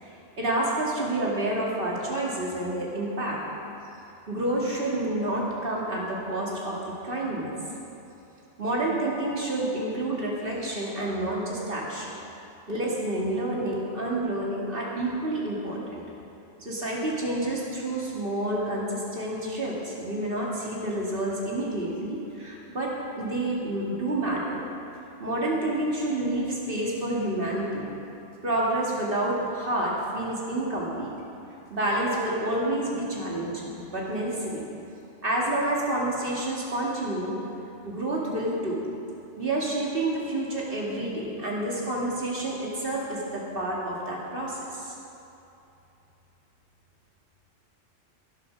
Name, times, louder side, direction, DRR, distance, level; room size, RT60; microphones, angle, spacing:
voice 1, 0.0-3.4 4.3-6.8 7.0-7.6 8.6-12.1 12.7-16.0 16.6-24.6 25.2-27.9 28.4-31.1 31.7-34.6 35.2-37.4 37.8-38.8 39.4-44.9, right 1 dB, 50° right, -4 dB, 2.6 m, -29 dB
15.5 x 7.7 x 6.4 m, 2.9 s
omnidirectional pair, 1.2 m